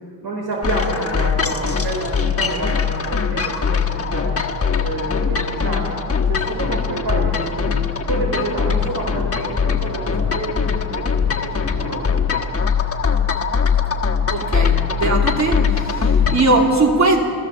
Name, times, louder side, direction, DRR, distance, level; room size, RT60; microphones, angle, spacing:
voice 1, 0.0-4.5 4.8-6.0 6.3-7.8 8.1-12.4 16.0-16.3, right 2 dB, 70° right, -1 dB, 4.4 m, -28 dB
sound 1, 0.6-16.5, left 6 dB, 35° left, 1.4 m, -21 dB
voice 2, 14.3-16.1 16.3-17.2, right 2 dB, 45° right, 1 dB, 3.1 m, -19 dB
27.5 x 15.5 x 7.3 m, 2.4 s
wide cardioid pair, 150°, 38 cm